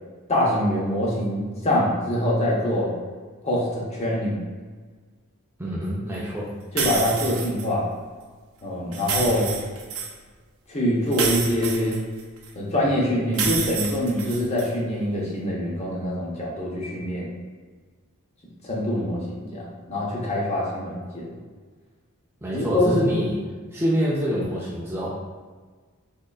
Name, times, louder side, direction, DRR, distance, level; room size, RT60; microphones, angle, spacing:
voice 1, 0.3-2.9 3.4-4.4 6.7-7.9 8.6-9.5 10.7-12.0 12.5-17.3 18.6-21.3 22.5-22.9, left 1 dB, 30° left, -4 dB, 0.7 m, -24 dB
voice 2, 5.6-6.5 22.4-23.4 23.7-25.1, equal, 10° right, -6 dB, 0.4 m, -25 dB
sound 1, 6.8-7.7 8.9-10.1 11.1-12.5 13.3-14.7, right 5 dB, 65° right, 0.5 m, -28 dB
3.7 x 3.2 x 2.3 m, 1.5 s
head